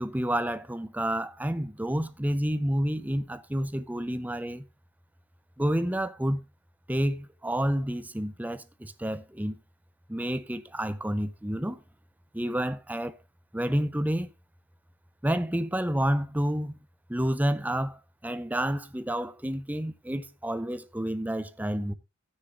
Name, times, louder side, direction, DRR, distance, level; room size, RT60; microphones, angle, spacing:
voice 1, 0.0-4.6 5.6-6.4 6.9-9.6 10.1-11.8 12.3-13.2 13.5-14.3 15.2-16.8 17.1-21.9, equal, 10° right, 0.6 m, -29 dB
13.5 x 9.7 x 2.5 m
head